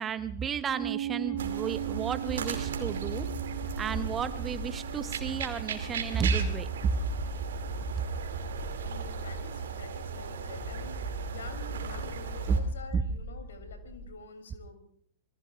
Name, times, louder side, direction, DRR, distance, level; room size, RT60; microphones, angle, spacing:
voice 1, 0.0-3.3 3.8-6.9 12.5-12.6 12.9-13.0, right 6 dB, 20° right, 13 dB, 0.9 m, -31 dB
Piano, 0.7-7.9, right 12 dB, 40° right, 4.3 m, -39 dB
sound 1, 1.4-12.6, right 5 dB, 65° right, 2.6 m, -37 dB
sound 2, 3.1-5.4 6.3-9.5 10.5-14.1, equal, 35° left, 7.1 m, -41 dB
voice 2, 8.9-14.8, left 4 dB, 70° left, 8 dB, 3.1 m, -47 dB
27.0 x 20.5 x 2.5 m, 0.62 s
figure-of-eight pair, 105°, 0 cm